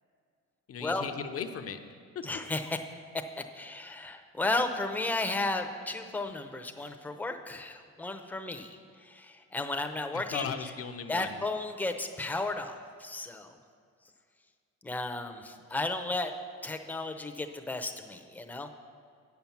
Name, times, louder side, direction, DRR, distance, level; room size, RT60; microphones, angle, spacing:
voice 1, 0.7-1.8 2.1-2.2 10.1-11.4, left 7 dB, 50° left, 8 dB, 0.7 m, -37 dB
voice 2, 2.2-2.8 3.4-10.7 11.1-13.6 14.8-16.3 16.6-18.7, left 2 dB, 5° left, 5 dB, 0.7 m, -34 dB
8.6 x 5.9 x 7.2 m, 2.2 s
cardioid pair, 90°, 30 cm